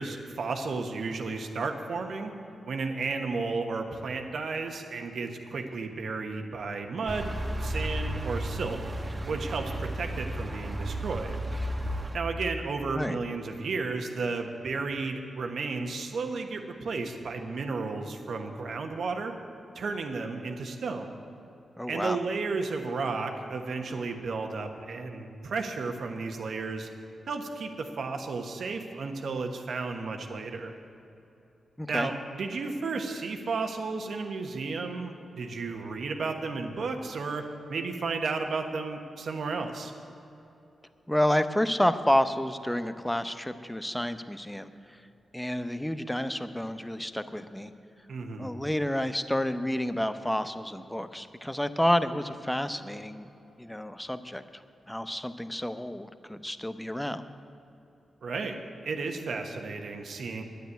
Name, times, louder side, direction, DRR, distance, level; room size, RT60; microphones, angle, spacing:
voice 1, 0.0-2.3 2.7-7.3 7.6-8.8 9.3-11.3 12.1-19.3 19.7-21.1 21.9-26.9 27.3-30.7 31.9-39.9 48.1-48.5 58.2-58.6 58.8-60.4, right 4 dB, 70° right, 4 dB, 1.3 m, -33 dB
sound 1, 7.1-12.2, right 1 dB, 30° right, 1.2 m, -33 dB
voice 2, 21.8-22.2 31.8-32.1 41.1-45.0 45.3-47.7 48.4-53.3 53.6-54.4 54.9-57.2, left 1 dB, 5° left, 11 dB, 0.7 m, -29 dB
9.9 x 9.3 x 9.2 m, 2.9 s
cardioid pair, 55°, 0 cm